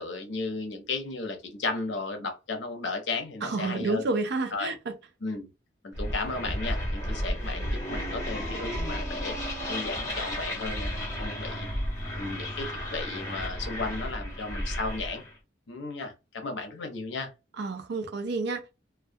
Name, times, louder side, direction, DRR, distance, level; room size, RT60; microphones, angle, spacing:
voice 1, 0.0-4.0 4.5-4.7 5.2-5.5 5.8-9.3 9.7-11.7 12.2-15.2 15.7-17.3, left 3 dB, 65° left, 0.7 m, -34 dB
voice 2, 3.4-4.9 17.6-18.8, right 3 dB, 60° right, 0.4 m, -30 dB
sound 1, 5.9-15.3, equal, 15° left, 0.8 m, -33 dB
2.2 x 2.1 x 2.6 m
head